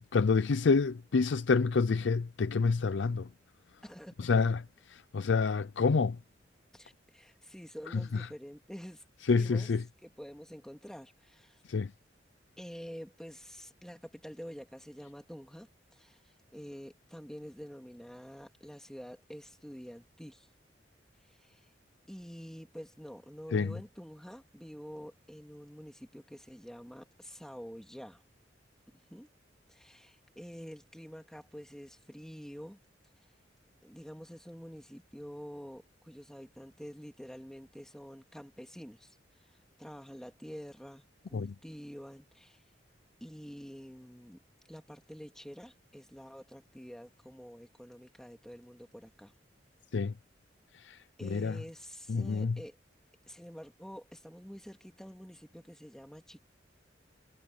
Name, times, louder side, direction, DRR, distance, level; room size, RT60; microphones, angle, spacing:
voice 1, 0.1-3.3 4.2-4.6 4.9-6.2 9.3-9.8 11.7-11.9 23.5-23.7 41.3-41.5 49.9-50.1 50.8-51.6 52.1-52.6, left 4 dB, 80° left, 0.5 m, -28 dB
voice 2, 3.8-4.4 6.7-9.7 10.0-11.6 12.6-16.2 16.5-20.5 21.3-21.7 22.1-28.2 29.1-29.3 29.7-32.8 33.8-42.6 43.2-44.4 44.7-49.3 51.2-52.8 53.3-56.4, equal, 5° left, 2.6 m, -48 dB
head